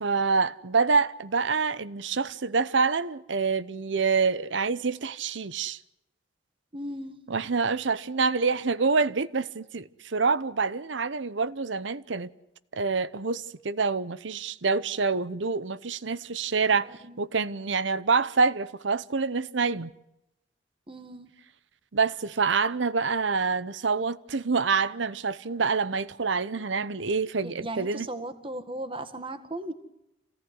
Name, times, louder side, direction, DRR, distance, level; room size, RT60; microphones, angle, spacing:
voice 1, 0.0-5.8 7.3-12.3 12.7-19.9 21.9-28.1, right 4 dB, 75° right, 0.8 m, -26 dB
voice 2, 6.7-7.2 17.0-17.2 20.9-21.3 27.4-29.7, right 1 dB, 30° right, 1.7 m, -36 dB
27.0 x 17.0 x 9.5 m
head